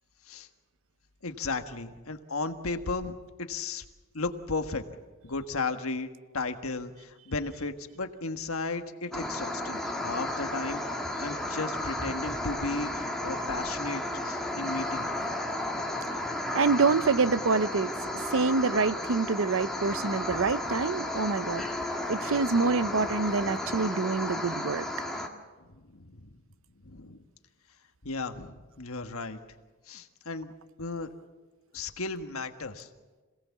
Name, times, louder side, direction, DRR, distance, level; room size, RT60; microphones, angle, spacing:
voice 1, 1.2-3.1 3.5-3.8 4.1-4.9 5.2-15.1 23.6-23.7 25.9-26.3 26.8-27.2 28.0-29.4 29.9-30.5 30.8-31.1 31.7-32.9, left 3 dB, 75° left, 1.5 m, -35 dB
sound 1, 9.1-25.3, left 1 dB, ahead, 2.0 m, -33 dB
voice 2, 16.5-18.0 18.3-21.6 22.1-24.9, right 4 dB, 65° right, 0.6 m, -26 dB
27.0 x 17.5 x 7.2 m
head